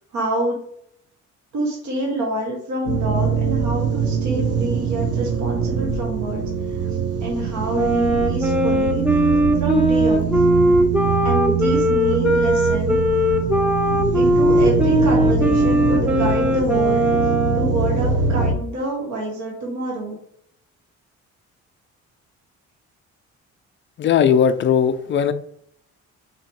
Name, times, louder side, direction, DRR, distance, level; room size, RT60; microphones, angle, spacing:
voice 1, 0.1-0.6 1.5-6.4 6.7-6.9 7.2-10.3 11.2-13.3 14.1-17.1 17.5-20.2, right 1 dB, 70° right, -2 dB, 1.1 m, -27 dB
sound 1, 2.9-18.5, right 5 dB, 55° right, 0.8 m, -23 dB
Wind instrument woodwind instrument, 7.7-17.8, equal, 5° right, 0.6 m, -19 dB
voice 2, 24.0-25.3, left 8 dB, 40° left, 10 dB, 0.4 m, -18 dB
2.9 x 2.8 x 4.4 m, 0.69 s
cardioid pair, 90°, 30 cm